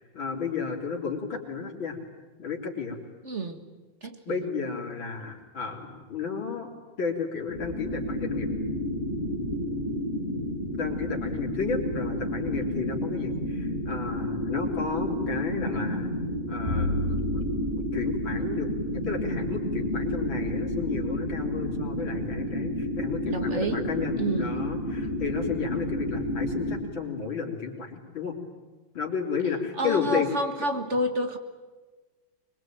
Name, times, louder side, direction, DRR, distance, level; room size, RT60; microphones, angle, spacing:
voice 1, 0.0-2.0 2.4-3.0 4.2-6.7 7.0-8.5 10.7-16.1 16.5-17.6 17.9-28.3 28.9-30.3, left 5 dB, 75° left, 1 dB, 4.2 m, -32 dB
voice 2, 3.2-3.6 4.0-4.5 23.3-23.8 24.2-24.7 29.8-31.4, right 1 dB, 35° right, 7 dB, 2.0 m, -29 dB
sound 1, 7.5-26.8, left 1 dB, 25° left, 5.3 m, -31 dB
Bowed string instrument, 16.7-22.8, left 1 dB, 15° right, 2.3 m, -36 dB
25.0 x 22.0 x 9.2 m, 1.3 s
omnidirectional pair, 2.1 m